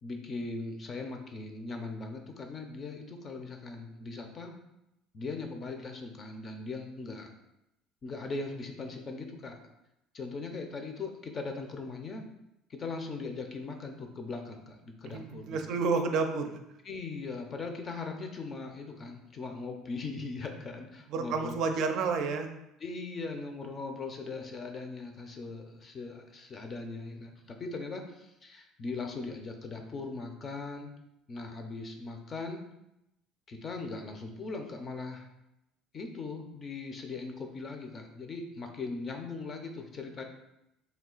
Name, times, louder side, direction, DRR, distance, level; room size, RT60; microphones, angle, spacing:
voice 1, 0.0-4.6 5.1-7.3 8.0-9.6 10.1-12.3 12.7-15.7 16.8-21.6 22.8-30.9 31.3-32.6 33.5-35.3 35.9-40.2, left 3 dB, 35° left, 4 dB, 0.6 m, -39 dB
voice 2, 15.1-16.6 21.1-22.5, right 4 dB, 65° right, 5 dB, 0.4 m, -30 dB
3.3 x 2.3 x 3.8 m, 0.86 s
supercardioid pair, 100°, 0 cm